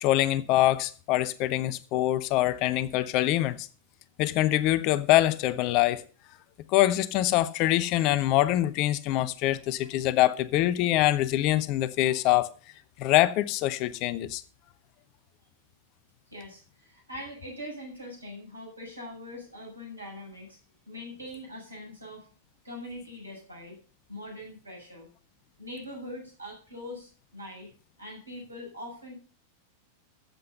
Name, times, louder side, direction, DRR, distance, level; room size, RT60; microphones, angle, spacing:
voice 1, 0.0-3.7 4.2-6.0 6.7-12.5 13.0-14.4, left 15 dB, 40° left, 0.8 m, -24 dB
voice 2, 16.3-20.6 20.9-22.3 22.6-23.8 24.1-25.1 25.6-27.7 28.0-29.1, left 1 dB, 80° right, 7.3 m, -42 dB
13.5 x 7.8 x 5.6 m
figure-of-eight pair, 90°, 0 cm